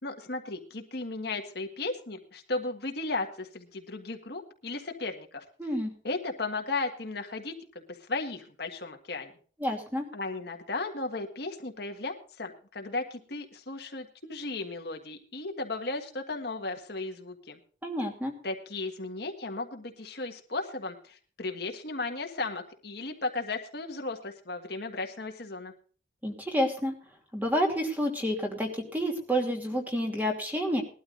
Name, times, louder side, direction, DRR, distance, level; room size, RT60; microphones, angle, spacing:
voice 1, 0.0-5.4 6.0-9.3 10.1-17.6 18.4-25.7, left 3 dB, 55° left, 4 dB, 1.7 m, -35 dB
voice 2, 5.6-5.9 9.6-10.0 17.8-18.3 26.2-26.9 27.3-30.8, equal, 10° right, 2 dB, 2.6 m, -29 dB
20.5 x 12.5 x 2.6 m, 0.42 s
head